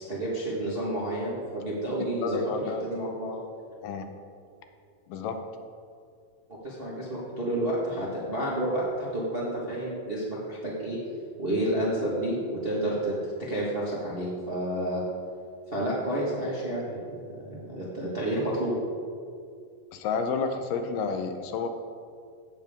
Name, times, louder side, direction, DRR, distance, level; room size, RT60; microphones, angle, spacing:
voice 1, 0.0-2.4 2.8-3.4 6.6-11.0 11.4-15.0 15.7-18.7, right 1 dB, 40° right, -6 dB, 0.8 m, -30 dB
voice 2, 2.2-2.8 3.8-4.1 5.1-5.4 19.9-21.7, left 5 dB, 90° left, 6 dB, 2.5 m, -30 dB
15.5 x 6.9 x 3.6 m, 2.3 s
omnidirectional pair, 3.8 m